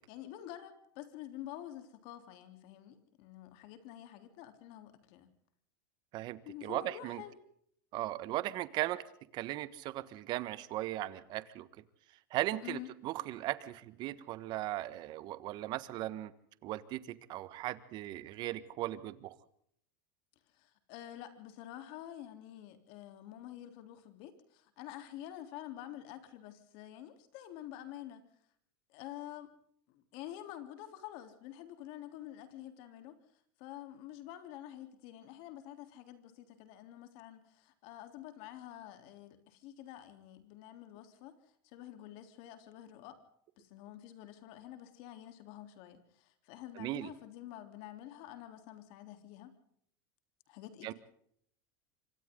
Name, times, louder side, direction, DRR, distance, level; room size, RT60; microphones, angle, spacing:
voice 1, 0.1-5.3 6.4-7.3 12.6-12.9 20.5-28.2 28.9-29.5 29.9-33.2 33.6-41.4 41.6-43.2 43.6-49.5 50.5-50.9, left 12 dB, 55° left, 8 dB, 3.6 m, -48 dB
voice 2, 6.1-7.2 7.9-9.0 9.3-11.7 12.3-16.3 16.6-19.4 46.8-47.1 50.8-50.9, right 15 dB, 40° right, 15 dB, 1.4 m, -37 dB
26.0 x 25.5 x 3.9 m, 0.66 s
supercardioid pair, 145°, 11 cm